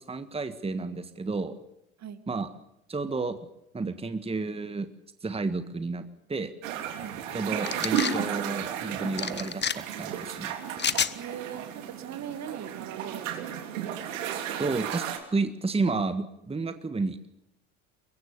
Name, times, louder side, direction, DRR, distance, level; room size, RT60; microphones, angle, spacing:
voice 1, 0.0-1.6 2.3-2.5 2.9-3.4 3.7-4.9 5.2-6.5 7.3-10.5 14.6-15.1 15.3-17.3, right 3 dB, 15° right, 10 dB, 1.6 m, -31 dB
sound 1, 6.6-15.2, right 9 dB, 70° right, 3.3 m, -34 dB
sound 2, 7.7-8.2 9.2-9.7 10.8-11.1, left 7 dB, 25° left, 1.2 m, -28 dB
voice 2, 11.2-13.7, right 9 dB, 40° right, 12 dB, 2.1 m, -40 dB
24.0 x 22.5 x 6.9 m, 0.81 s
figure-of-eight pair, 65°, 40 cm